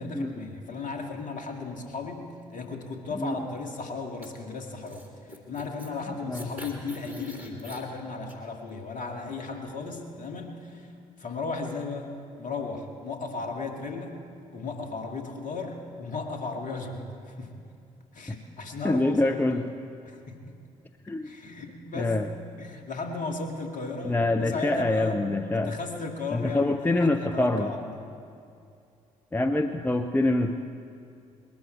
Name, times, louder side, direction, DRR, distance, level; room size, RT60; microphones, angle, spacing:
voice 1, 0.0-5.1 5.5-10.9 11.2-12.1 12.4-14.2 14.5-17.5 18.1-19.7 20.1-20.6 21.2-22.2 22.6-25.2 25.5-28.0, left 3 dB, 45° left, 3 dB, 2.2 m, -35 dB
sound 1, 4.2-4.3 4.9-5.9 6.3-7.8 8.3-8.4, left 1 dB, 90° right, 1.7 m, -43 dB
voice 2, 18.8-19.7 21.1-21.3 21.9-22.3 24.0-25.7 26.3-27.7 29.3-30.6, left 2 dB, 10° left, 6 dB, 0.7 m, -25 dB
21.0 x 12.5 x 4.6 m, 2.5 s
figure-of-eight pair, 45°, 18 cm